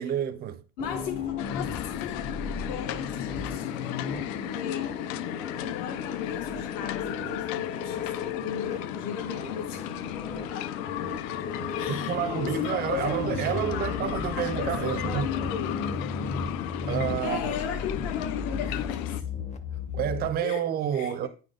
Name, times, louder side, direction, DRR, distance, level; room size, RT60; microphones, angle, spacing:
voice 1, 0.0-0.6 11.3-15.3 16.8-17.6 19.9-21.3, right 9 dB, 25° right, 0.4 m, -30 dB
voice 2, 0.8-11.0 11.8-15.9 17.2-19.2 20.4-20.7 20.9-21.3, left 7 dB, 65° left, 1.2 m, -37 dB
sound 1, 0.8-20.3, left 5 dB, 20° left, 0.6 m, -35 dB
sound 2, 1.4-19.2, left 12 dB, 90° left, 0.7 m, -35 dB
9.4 x 4.2 x 4.9 m
cardioid pair, 170°, 38 cm